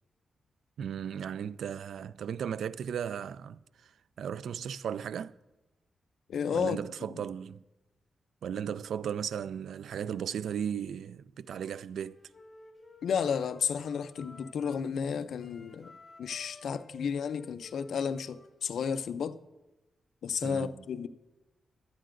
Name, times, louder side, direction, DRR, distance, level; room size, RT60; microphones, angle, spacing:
voice 1, 0.8-3.9 4.2-5.4 6.5-7.6 8.4-12.2 20.4-20.8, right 8 dB, 85° right, 0.3 m, -36 dB
voice 2, 6.3-6.8 13.0-15.9 16.2-19.4 20.2-21.1, left 7 dB, 75° left, 0.4 m, -32 dB
Wind instrument woodwind instrument, 11.5-14.9 15.3-19.0, left 2 dB, 15° left, 1.4 m, -54 dB
18.0 x 12.0 x 2.5 m
wide cardioid pair, 160°, 0 cm